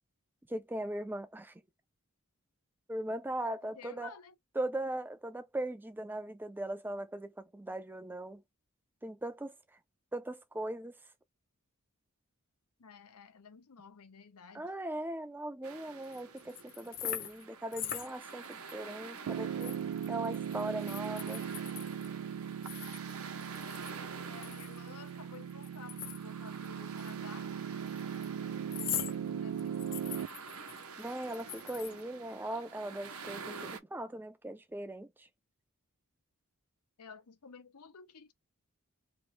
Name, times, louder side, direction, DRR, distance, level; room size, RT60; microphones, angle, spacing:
voice 1, 0.5-1.5 2.9-4.1 4.6-8.4 9.0-9.5 10.1-10.9 14.5-19.7 20.1-21.4 31.0-35.3, right 1 dB, 10° right, 0.4 m, -39 dB
voice 2, 3.6-4.4 12.8-14.7 24.3-27.6 28.8-29.8 37.0-38.3, left 5 dB, 85° left, 0.7 m, -52 dB
sound 1, 15.6-33.8, right 5 dB, 75° right, 0.8 m, -48 dB
sound 2, 16.0-17.4 17.7-18.7 19.1-19.2 19.6-22.1 22.6-24.0 24.3-26.7 27.0-27.1 27.9-28.3 28.7-29.2 29.6-32.0, left 10 dB, 40° left, 0.6 m, -42 dB
Piano, 19.3-30.3, right 8 dB, 90° right, 0.3 m, -39 dB
3.1 x 3.0 x 3.1 m
head